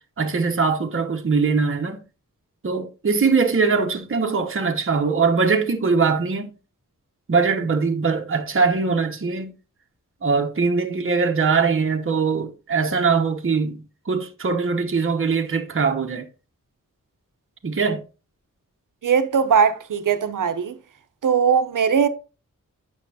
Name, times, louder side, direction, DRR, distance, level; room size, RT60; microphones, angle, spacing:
voice 1, 0.2-2.0 2.6-6.5 7.3-9.5 10.2-16.3 17.6-18.0, right 5 dB, 40° right, 1.0 m, -21 dB
voice 2, 19.0-20.8 21.2-22.1, right 6 dB, 80° right, 0.8 m, -19 dB
8.3 x 6.3 x 2.8 m
wide cardioid pair, 80°, 32 cm